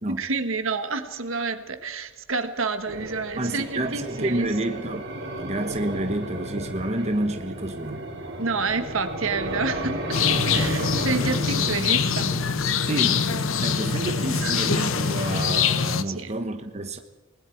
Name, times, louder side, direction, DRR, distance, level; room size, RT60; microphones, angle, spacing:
voice 1, 0.1-4.5 8.4-10.2 10.5-12.3 14.4-14.5 16.0-16.3, right 4 dB, 80° right, 1.5 m, -29 dB
sound 1, 2.8-15.6, right 1 dB, 55° right, 3.7 m, -34 dB
voice 2, 3.4-5.0 5.4-8.1 12.8-13.2 13.6-17.0, right 1 dB, 35° right, 1.3 m, -29 dB
sound 2, 10.1-16.0, left 6 dB, 75° left, 0.9 m, -24 dB
28.5 x 20.5 x 4.7 m
head